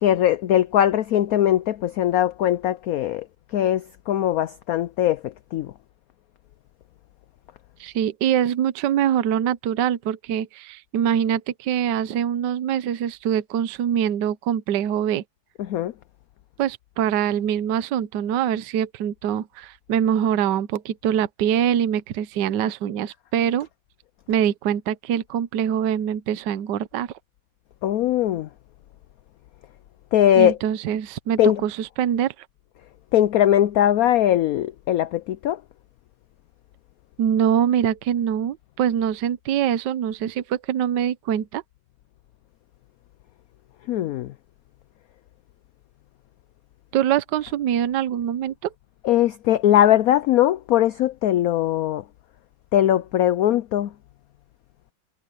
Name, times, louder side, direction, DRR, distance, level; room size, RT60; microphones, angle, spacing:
voice 1, 0.0-3.2 3.5-5.7 15.6-15.9 27.8-28.5 30.1-30.6 31.4-31.6 33.1-35.6 43.9-44.3 49.0-52.0 52.7-53.9, left 11 dB, 85° left, 0.7 m, -20 dB
voice 2, 7.8-15.2 16.6-23.7 24.3-27.1 30.3-32.3 37.2-41.6 46.9-48.7, right 9 dB, 70° right, 1.4 m, -24 dB
omnidirectional pair, 2.1 m